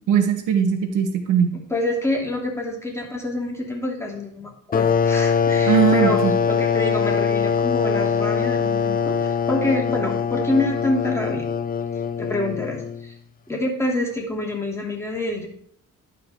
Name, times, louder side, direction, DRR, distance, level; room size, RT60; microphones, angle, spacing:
voice 1, 0.1-1.5 5.7-6.3, right 7 dB, 85° right, 6 dB, 1.3 m, -19 dB
voice 2, 1.7-6.2 6.5-11.4 12.2-13.1 13.5-15.5, left 1 dB, 10° left, -1 dB, 2.7 m, -26 dB
sound 1, 4.7-13.1, left 6 dB, 30° left, 0.5 m, -22 dB
11.5 x 4.9 x 4.6 m, 0.67 s
cardioid pair, 90°, 30 cm